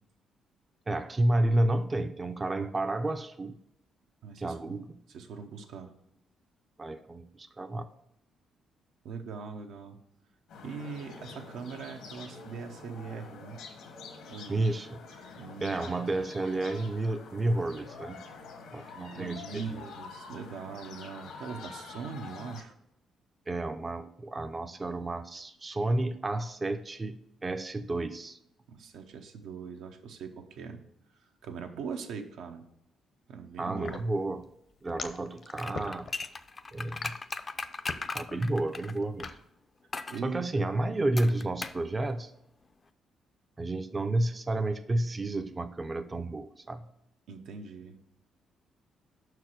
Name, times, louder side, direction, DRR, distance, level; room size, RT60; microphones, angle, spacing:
voice 1, 0.9-3.6 4.4-5.0 6.8-7.9 14.5-15.0 15.6-18.2 18.7-19.8 23.5-28.4 33.6-34.4 34.8-36.1 36.7-37.1 38.1-39.3 40.2-42.3 43.6-46.9, right 2 dB, 25° right, 8 dB, 0.5 m, -31 dB
voice 2, 4.2-4.8 5.1-5.9 9.0-10.0 10.6-13.6 14.3-14.7 15.4-16.0 19.1-22.7 28.7-30.8 31.4-32.7 33.3-34.1 40.1-40.5 47.3-48.0, right 5 dB, 80° right, 5 dB, 0.8 m, -41 dB
sound 1, 10.5-22.6, left 4 dB, 85° left, 1.4 m, -47 dB
sound 2, 33.8-39.4, left 5 dB, 60° left, 0.7 m, -40 dB
sound 3, 35.5-39.3 39.9-40.2 41.2-41.8 42.1-42.2, left 3 dB, 30° left, 0.4 m, -38 dB
5.8 x 4.7 x 6.2 m, 0.79 s
cardioid pair, 90°, 0 cm